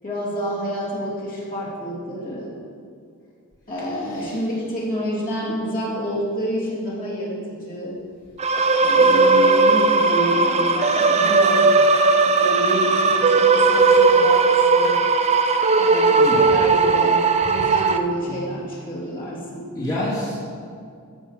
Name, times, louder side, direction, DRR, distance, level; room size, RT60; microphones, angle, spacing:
voice 1, 0.0-2.5 3.7-8.0 8.8-11.7 12.2-15.0 15.8-19.7, equal, 40° left, -6 dB, 2.9 m, -28 dB
sound 1, 8.4-18.0, right 4 dB, 30° right, 0.5 m, -17 dB
voice 2, 16.2-16.5 18.2-18.4 19.8-20.4, left 1 dB, 15° left, -9 dB, 2.2 m, -27 dB
14.0 x 5.3 x 6.6 m, 2.3 s
head